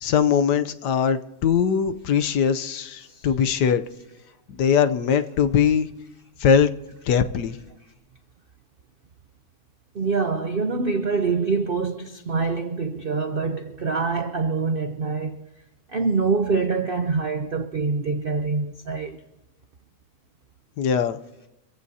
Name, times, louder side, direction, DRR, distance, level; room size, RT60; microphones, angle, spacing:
voice 1, 0.0-3.8 4.5-5.9 6.4-6.7 7.1-7.6 20.8-21.2, left 7 dB, 70° left, 1.3 m, -21 dB
voice 2, 10.0-15.4 15.9-19.2, right 4 dB, 60° right, 0.5 m, -25 dB
24.5 x 15.5 x 2.8 m
omnidirectional pair, 1.9 m